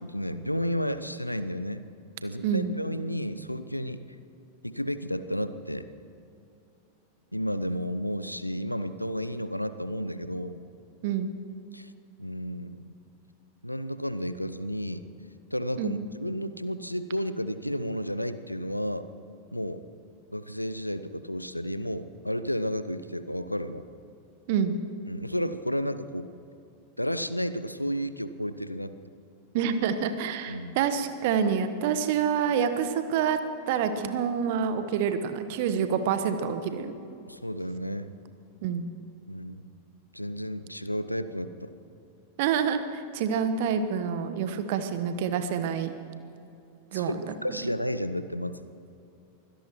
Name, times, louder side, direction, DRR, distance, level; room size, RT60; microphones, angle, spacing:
voice 1, 0.0-1.8 2.2-4.0 4.6-5.9 7.3-10.6 11.7-11.9 12.2-12.9 13.6-15.1 15.5-19.1 19.5-19.8 20.3-23.9 25.1-26.3 27.0-28.9 30.5-30.8 37.3-38.1 39.3-39.7 40.1-41.7 46.9-48.6, equal, 90° left, 13 dB, 0.6 m, -32 dB
voice 2, 29.5-33.4 33.7-36.9 38.6-38.9 42.4-45.9 46.9-47.1, right 7 dB, 50° right, 10 dB, 1.2 m, -27 dB
24.5 x 17.0 x 3.1 m, 2.7 s
figure-of-eight pair, 90°, 0 cm